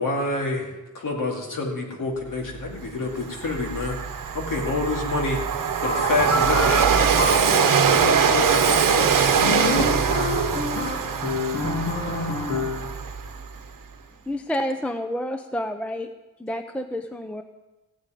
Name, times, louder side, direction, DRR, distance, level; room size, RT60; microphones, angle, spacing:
voice 1, 0.0-4.0 4.3-5.4 5.8-9.9 10.5-10.7, left 3 dB, 75° left, 2.4 m, -28 dB
Train, 2.6-2.7 3.1-13.5, right 7 dB, 75° right, 1.0 m, -22 dB
sound 1, 5.8-12.9, left 1 dB, 60° left, 3.0 m, -28 dB
voice 2, 11.8-14.5, equal, 25° left, 2.5 m, -60 dB
voice 3, 14.3-16.1 16.4-17.4, equal, 5° left, 0.5 m, -29 dB
15.5 x 5.4 x 9.0 m
wide cardioid pair, 155°, 33 cm